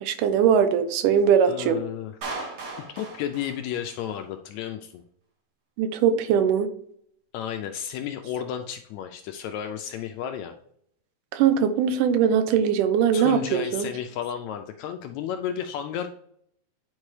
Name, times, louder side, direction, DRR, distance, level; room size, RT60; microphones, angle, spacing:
voice 1, 0.0-1.8 5.8-6.7 11.3-13.9, right 8 dB, 90° right, 10 dB, 2.3 m, -21 dB
voice 2, 1.5-2.1 2.9-5.0 7.3-10.5 13.1-16.1, left 9 dB, 80° left, 6 dB, 1.6 m, -32 dB
Clapping, 2.2-4.2, right 3 dB, 65° right, 2.9 m, -37 dB
9.7 x 4.5 x 3.2 m, 0.69 s
omnidirectional pair, 3.6 m